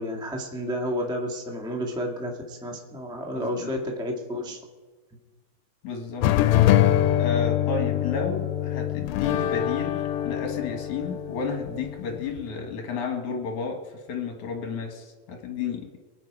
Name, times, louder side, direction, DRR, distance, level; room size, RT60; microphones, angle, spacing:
voice 1, 0.0-4.6, equal, 5° right, 1 dB, 0.6 m, -31 dB
voice 2, 3.3-3.7 5.8-6.3 7.2-15.9, left 5 dB, 60° left, 3 dB, 2.8 m, -32 dB
sound 1, 6.2-12.4, left 12 dB, 80° left, 2.3 m, -24 dB
24.0 x 9.3 x 4.9 m, 1.3 s
omnidirectional pair, 4.1 m